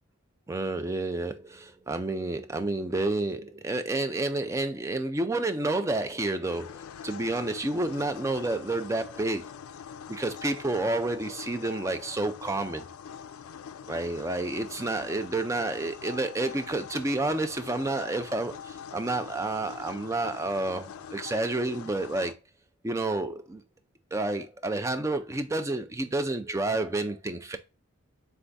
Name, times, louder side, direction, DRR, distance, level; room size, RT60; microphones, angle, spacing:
voice 1, 0.5-9.5 10.1-12.9 13.9-22.4 22.8-23.6 24.1-27.6, right 2 dB, 15° right, 0.3 m, -30 dB
sound 1, 6.5-22.3, left 7 dB, 75° left, 0.3 m, -44 dB
3.4 x 3.4 x 3.9 m
head